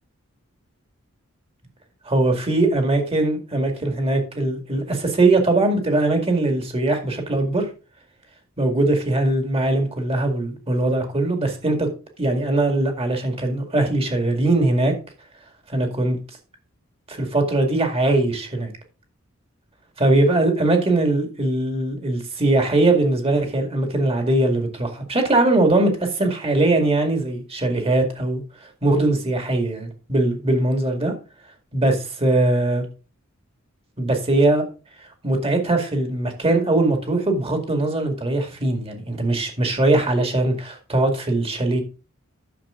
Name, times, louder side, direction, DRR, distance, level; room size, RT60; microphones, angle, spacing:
voice 1, 2.0-7.7 8.6-11.9 12.2-14.9 15.7-16.2 17.1-18.7 20.0-31.1 31.7-32.9 34.0-34.6 35.0-41.8, right 2 dB, 30° right, 2.1 m, -21 dB
10.5 x 6.8 x 3.8 m
head